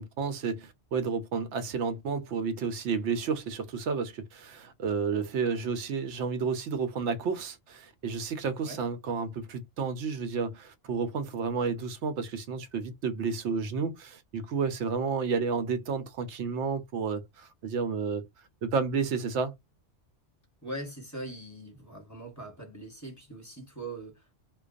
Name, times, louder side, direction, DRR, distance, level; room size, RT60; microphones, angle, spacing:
voice 1, 0.0-18.3 18.6-19.5, right 5 dB, 75° right, 0.9 m, -31 dB
voice 2, 20.6-24.3, right 1 dB, 15° left, 1.0 m, -41 dB
2.3 x 2.2 x 2.4 m
omnidirectional pair, 1.3 m